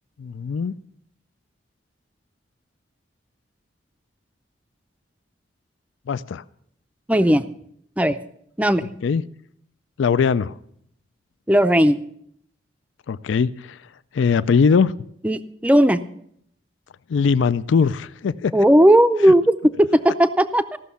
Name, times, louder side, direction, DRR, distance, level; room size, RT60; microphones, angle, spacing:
voice 1, 0.2-0.7 6.1-6.4 9.0-9.2 10.0-10.5 13.1-13.8 14.1-14.9 17.1-18.5, left 5 dB, 75° left, 17 dB, 0.4 m, -20 dB
voice 2, 7.1-7.4 8.0-8.2 8.6-8.9 11.5-12.0 15.2-16.0 18.5-20.8, equal, 5° right, 11 dB, 0.4 m, -16 dB
15.5 x 6.3 x 6.9 m, 0.70 s
head